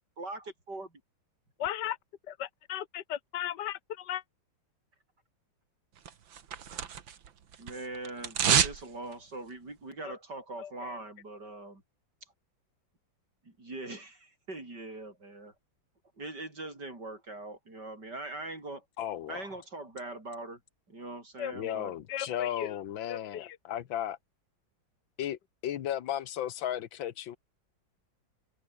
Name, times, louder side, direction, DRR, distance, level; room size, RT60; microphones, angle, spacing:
voice 1, 0.2-0.9 7.6-11.8 13.5-15.5 16.2-18.8 19.3-20.6 20.9-21.9, right 2 dB, 60° right, 7.2 m, -42 dB
voice 2, 1.6-2.0 2.3-4.2 10.0-10.1 10.6-11.0 21.4-21.8 22.1-22.8 23.1-23.6, left 11 dB, 65° left, 1.8 m, -37 dB
sound 1, 6.1-7.3 7.5-8.8 9.1-9.2, right 8 dB, 85° right, 2.4 m, -28 dB
voice 3, 19.0-19.4 21.5-24.2 25.2-27.4, left 11 dB, 90° left, 1.8 m, -35 dB
omnidirectional pair, 2.0 m